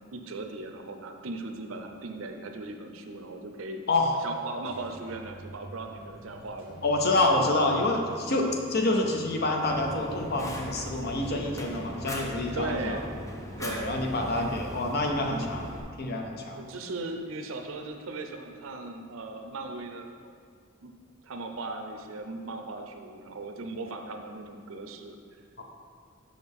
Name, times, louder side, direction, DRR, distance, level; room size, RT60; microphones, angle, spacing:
voice 1, 0.0-3.9 4.2-6.8 12.5-13.1 13.6-14.1 16.5-20.4 20.8-20.9 21.2-25.6, right 2 dB, 85° right, 5 dB, 0.6 m, -38 dB
sound 1, 4.4-16.0, right 2 dB, 10° right, 1.0 m, -49 dB
voice 2, 6.8-13.0 13.6-15.7 16.0-16.6 25.6-25.7, left 2 dB, 50° left, 2 dB, 0.7 m, -27 dB
Fire, 9.7-15.8, equal, 15° left, 0.5 m, -39 dB
6.3 x 5.8 x 3.6 m, 2.1 s
head